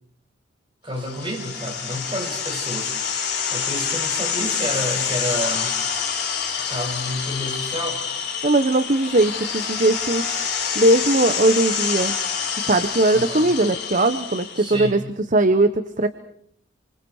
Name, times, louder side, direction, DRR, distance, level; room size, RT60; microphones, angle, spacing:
voice 1, 0.8-5.8 6.7-8.0 13.1-13.5 14.6-15.0, equal, 25° right, 1 dB, 6.4 m, -30 dB
sound 1, 1.0-14.8, left 6 dB, 60° left, 7.1 m, -27 dB
voice 2, 8.4-10.3 10.7-12.2 12.6-15.0 15.3-16.1, right 2 dB, 40° right, 10 dB, 1.1 m, -19 dB
28.5 x 26.0 x 4.8 m, 0.64 s
head